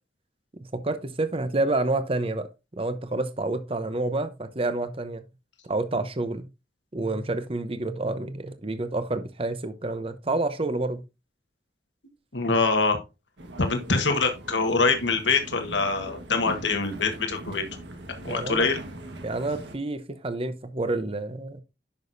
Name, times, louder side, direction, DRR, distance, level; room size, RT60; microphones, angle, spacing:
voice 1, 0.7-2.5 2.7-5.2 5.6-6.4 6.9-11.0 18.3-18.7 19.2-21.6, right 2 dB, 30° right, 0.8 m, -28 dB
voice 2, 12.3-13.0 13.6-17.7 18.2-18.8, left 4 dB, 80° left, 1.5 m, -24 dB
sound 1, 13.4-19.8, right 1 dB, 80° right, 1.5 m, -41 dB
10.5 x 6.2 x 2.6 m
head